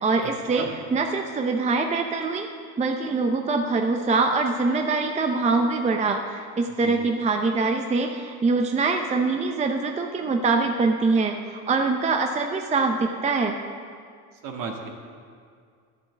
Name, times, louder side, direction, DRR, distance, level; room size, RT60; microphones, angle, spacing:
voice 1, 0.0-2.5 2.8-13.5, right 3 dB, 15° right, 4 dB, 0.6 m, -24 dB
voice 2, 14.4-14.9, right 5 dB, 55° right, 1 dB, 2.0 m, -33 dB
11.5 x 7.5 x 7.3 m, 2.2 s
supercardioid pair, 115°, 40 cm